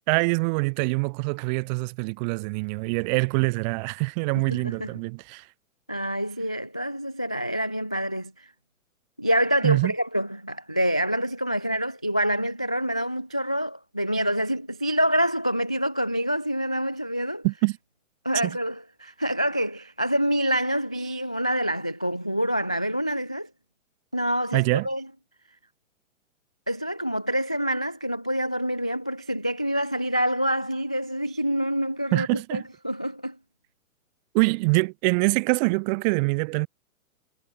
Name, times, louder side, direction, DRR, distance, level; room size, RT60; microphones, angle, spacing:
voice 1, 0.1-5.4 9.6-9.9 17.4-17.8 18.4-18.6 24.5-24.9 32.1-32.7 34.3-36.7, right 30 dB, 30° right, 2.8 m, -24 dB
voice 2, 4.5-4.9 5.9-8.5 9.2-17.4 18.2-23.5 24.1-25.0 26.7-33.4, equal, 5° left, 0.3 m, -26 dB
hypercardioid pair, 160°, 41 cm